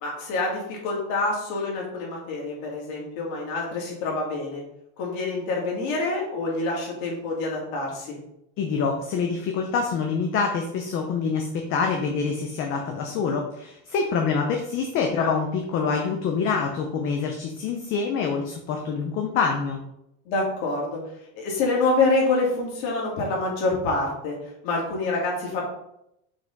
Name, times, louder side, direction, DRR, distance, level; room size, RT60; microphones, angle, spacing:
voice 1, 0.0-4.6 5.0-8.2 15.1-15.4 20.2-21.0 21.3-24.4 24.6-25.6, left 3 dB, 75° left, -2 dB, 3.1 m, -26 dB
voice 2, 8.6-19.8, left 5 dB, 30° left, 3 dB, 0.6 m, -26 dB
6.0 x 4.9 x 5.2 m, 0.80 s
cardioid pair, 175°, 42 cm